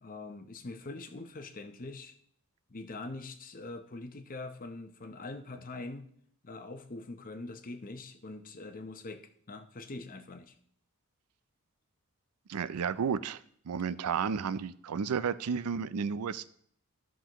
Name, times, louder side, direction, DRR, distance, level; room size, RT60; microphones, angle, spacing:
voice 1, 0.0-2.1 2.7-6.1 6.4-10.5, left 2 dB, 40° left, 8 dB, 0.7 m, -43 dB
voice 2, 12.5-13.4 13.7-16.5, right 6 dB, 90° right, 16 dB, 0.4 m, -32 dB
13.5 x 6.1 x 3.0 m, 0.64 s
head